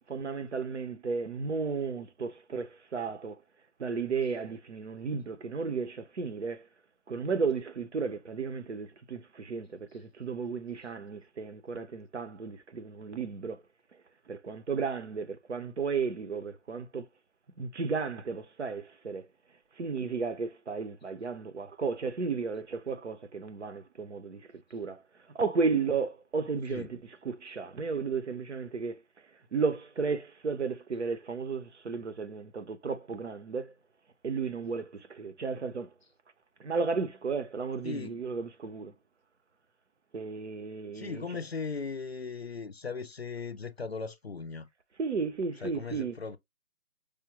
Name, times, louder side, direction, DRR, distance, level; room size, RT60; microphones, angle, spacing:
voice 1, 0.1-3.4 3.8-6.7 7.1-13.6 14.3-17.1 17.6-19.2 19.8-25.0 25.3-29.0 29.5-33.7 34.2-35.9 36.6-38.9 40.1-41.4 45.0-46.2, right 5 dB, 55° right, 0.8 m, -34 dB
voice 2, 37.8-38.2 40.9-44.7 45.6-46.4, left 5 dB, 50° left, 0.5 m, -38 dB
4.9 x 2.2 x 2.8 m
hypercardioid pair, 170°, 41 cm